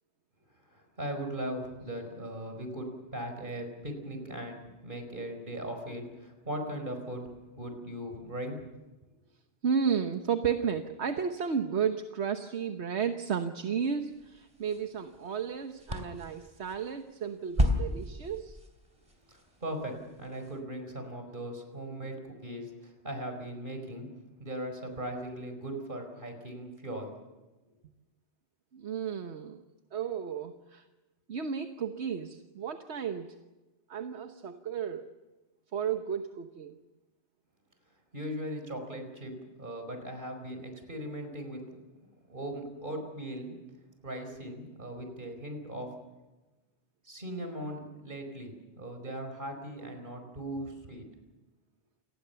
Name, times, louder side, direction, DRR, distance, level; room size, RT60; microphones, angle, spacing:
voice 1, 0.7-7.3 7.5-8.6 19.3-24.1 24.4-27.1 38.1-41.6 42.3-43.6 44.0-45.9 47.0-51.1, right 1 dB, 45° right, 5 dB, 5.0 m, -39 dB
voice 2, 9.6-18.6 28.7-29.6 29.9-30.8 31.3-33.4 33.9-35.1 35.7-36.8, right 7 dB, 75° right, 7 dB, 1.4 m, -33 dB
sound 1, 14.0-20.6, equal, 30° right, 3.7 m, -35 dB
28.0 x 19.5 x 7.0 m, 1.1 s
omnidirectional pair, 1.1 m